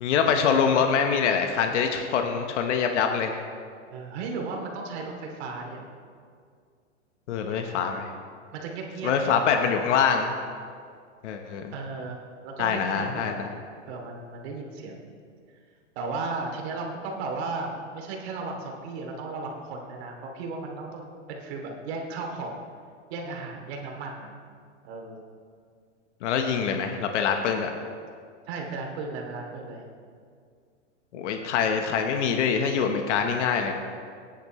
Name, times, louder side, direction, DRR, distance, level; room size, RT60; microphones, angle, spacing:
voice 1, 0.0-3.4 7.3-8.1 9.0-10.3 11.2-11.7 12.6-13.5 26.2-27.7 31.1-33.7, left 6 dB, 70° left, 4 dB, 1.2 m, -24 dB
voice 2, 3.9-5.9 7.5-7.8 8.5-9.4 11.7-12.2 12.4-13.4 13.9-15.1 16.0-22.6 23.1-24.3 24.8-25.2 28.5-29.8, right 3 dB, 55° right, 1 dB, 2.7 m, -35 dB
18.0 x 10.0 x 3.2 m, 2.2 s
hypercardioid pair, 130°, 37 cm